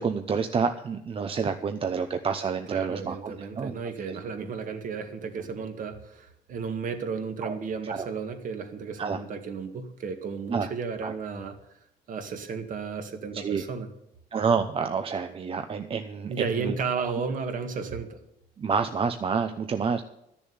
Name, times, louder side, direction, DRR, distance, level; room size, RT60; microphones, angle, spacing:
voice 1, 0.0-3.8 4.1-4.2 7.4-8.1 9.0-9.2 10.5-10.7 11.0-11.1 13.3-13.6 14.3-17.1 18.6-20.0, right 5 dB, 35° right, 7 dB, 0.8 m, -29 dB
voice 2, 2.7-11.6 12.1-13.9 16.3-18.2, right 5 dB, 50° right, 6 dB, 2.0 m, -33 dB
12.5 x 7.0 x 9.6 m, 0.79 s
cardioid pair, 110°, 17 cm